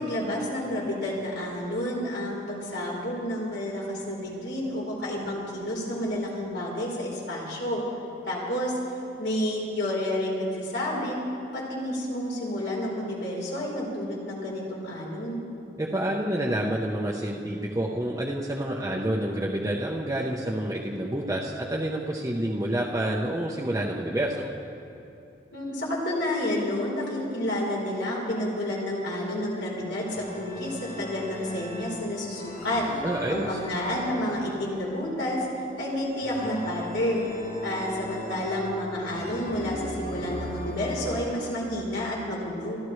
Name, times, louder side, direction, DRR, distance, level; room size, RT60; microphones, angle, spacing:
voice 1, 0.0-7.8 8.2-8.7 9.2-11.2 11.5-15.4 25.5-32.8 33.3-35.4 35.8-37.3 37.6-42.8, left 1 dB, 80° left, -4 dB, 4.1 m, -30 dB
voice 2, 15.8-24.5 33.0-33.5, right 1 dB, 20° right, -3 dB, 0.8 m, -28 dB
sound 1, 29.9-41.3, equal, 50° left, 3.9 m, -39 dB
27.0 x 12.5 x 3.2 m, 2.7 s
head